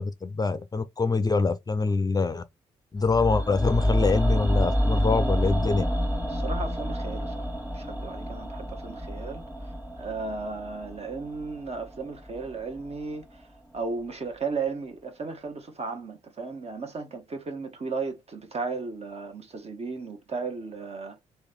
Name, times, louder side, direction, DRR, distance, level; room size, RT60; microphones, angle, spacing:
voice 1, 0.0-2.4 2.9-5.9, left 4 dB, 25° left, 0.5 m, -25 dB
sound 1, 3.0-13.1 13.4-13.5, equal, 10° right, 1.5 m, -29 dB
voice 2, 6.3-7.5 7.7-13.5 13.7-21.2, right 4 dB, 45° right, 1.1 m, -35 dB
3.1 x 2.8 x 3.5 m
hypercardioid pair, 40°, 16 cm